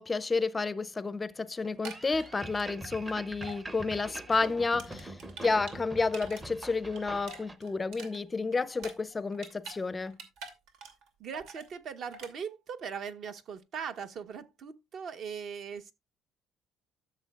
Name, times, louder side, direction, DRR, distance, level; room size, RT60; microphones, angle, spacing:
voice 1, 0.0-5.2 5.4-10.2, left 4 dB, 15° left, 0.5 m, -31 dB
sound 1, 1.6-3.1 3.4-3.6 4.0-6.4 6.7-9.8 10.1-11.1 11.3-11.7 12.1-12.3, right 3 dB, 85° right, 2.4 m, -46 dB
sound 2, 1.8-7.6, right 1 dB, 15° right, 0.7 m, -44 dB
voice 2, 11.2-15.9, right 6 dB, 50° right, 1.0 m, -40 dB
13.0 x 6.8 x 2.4 m
cardioid pair, 140°, 0 cm